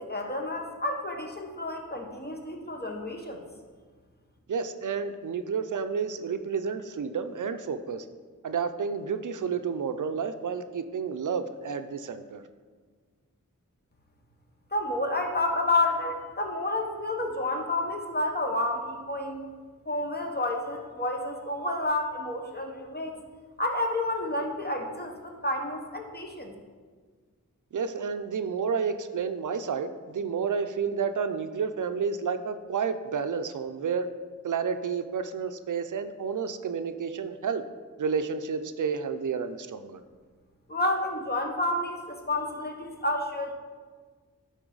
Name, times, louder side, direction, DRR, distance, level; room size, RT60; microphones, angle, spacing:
voice 1, 0.0-3.4 14.7-19.4 19.9-23.2 23.6-26.5 40.7-43.5, left 2 dB, 30° left, 3 dB, 1.1 m, -30 dB
voice 2, 4.5-8.0 8.4-12.4 27.7-34.1 34.4-37.6 38.0-40.0, right 6 dB, 70° right, 9 dB, 0.5 m, -30 dB
11.0 x 4.0 x 3.9 m, 1.5 s
wide cardioid pair, 55°, 32 cm